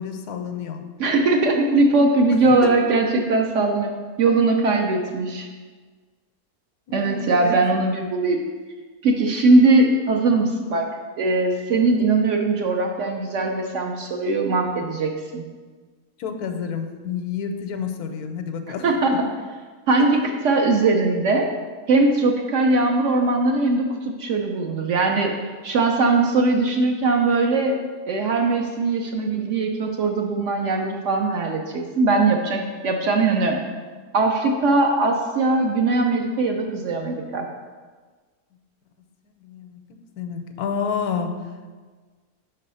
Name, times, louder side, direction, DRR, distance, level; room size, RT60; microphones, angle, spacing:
voice 1, 0.0-0.8 2.4-2.7 6.9-7.6 16.2-19.0 20.0-20.1 39.4-39.8 40.2-41.3, left 6 dB, 85° left, 6 dB, 1.1 m, -29 dB
voice 2, 1.0-3.9 4.2-5.5 6.9-8.4 9.0-10.9 11.2-15.4 18.8-19.2 19.9-21.5 21.9-25.3 25.6-27.8 28.1-33.6 34.1-37.5, right 3 dB, 65° right, 2 dB, 0.8 m, -20 dB
5.4 x 4.1 x 5.4 m, 1.4 s
omnidirectional pair, 1.6 m